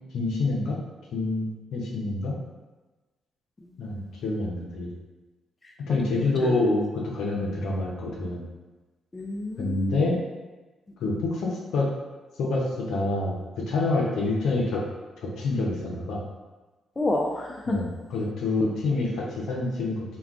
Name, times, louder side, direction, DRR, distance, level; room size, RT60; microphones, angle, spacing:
voice 1, 0.1-0.8 1.1-2.4 3.8-4.9 5.8-8.4 9.6-10.2 11.0-11.9 12.4-14.8 15.2-16.2 17.7-20.0, left 2 dB, 75° left, -2 dB, 0.6 m, -27 dB
voice 2, 3.6-4.1 6.2-6.5 9.1-10.1 17.0-17.8, left 2 dB, 25° left, 0 dB, 0.5 m, -30 dB
2.3 x 2.3 x 3.5 m, 1.2 s
supercardioid pair, 60°, 0 cm